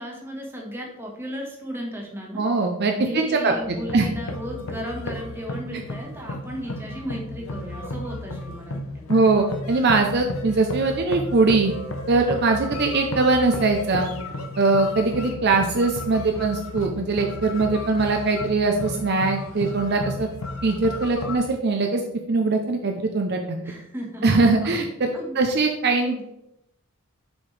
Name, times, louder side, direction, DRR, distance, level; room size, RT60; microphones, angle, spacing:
voice 1, 0.0-2.4 2.9-9.0 23.6-24.8 25.1-25.4 26.0-26.3, equal, 10° right, -1 dB, 1.3 m, -35 dB
voice 2, 2.4-3.5 3.9-4.1 9.1-11.7 12.1-14.1 14.6-20.3 20.6-22.0 22.3-23.6 24.2-26.3, right 3 dB, 50° right, 4 dB, 0.6 m, -21 dB
sound 1, 3.6-21.4, left 1 dB, 75° left, 0.8 m, -33 dB
7.1 x 5.0 x 3.2 m, 0.84 s
head